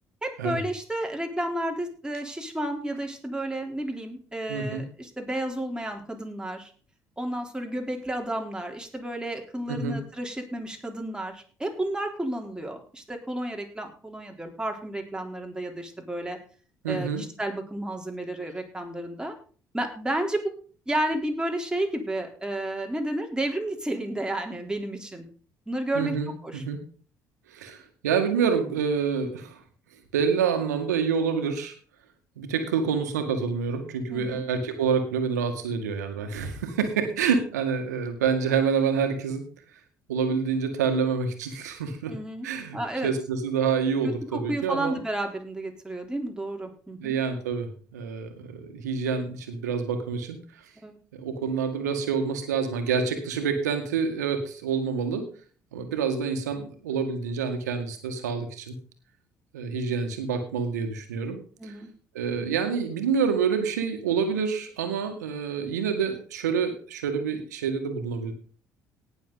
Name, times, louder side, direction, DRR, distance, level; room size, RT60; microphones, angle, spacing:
voice 1, 0.2-6.7 7.2-16.4 16.9-19.3 19.7-20.5 20.9-25.2 25.7-26.1 26.4-26.6 34.1-34.4 42.1-42.5 42.7-43.1 44.0-47.1 50.8-50.9 61.6-61.9, right 1 dB, 10° right, 2 dB, 3.7 m, -31 dB
voice 2, 4.5-4.8 9.7-10.0 16.8-17.2 25.9-26.8 27.5-29.6 30.1-31.7 32.4-39.4 40.1-42.1 42.4-45.0 47.0-50.7 51.1-55.3 55.7-58.7 59.5-61.7 62.1-68.3, right 6 dB, 85° right, 6 dB, 1.9 m, -27 dB
18.5 x 7.0 x 4.0 m, 0.41 s
hypercardioid pair, 55°, 9 cm